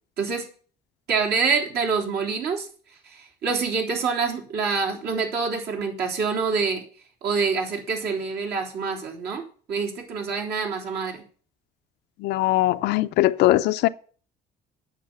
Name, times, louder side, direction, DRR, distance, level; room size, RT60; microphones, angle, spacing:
voice 1, 0.2-0.5 1.1-2.7 3.0-6.8 7.2-11.2, right 5 dB, 75° right, 3.5 m, -26 dB
voice 2, 12.2-13.9, left 16 dB, 85° left, 0.6 m, -20 dB
8.9 x 6.6 x 8.1 m
cardioid pair, 110°, 17 cm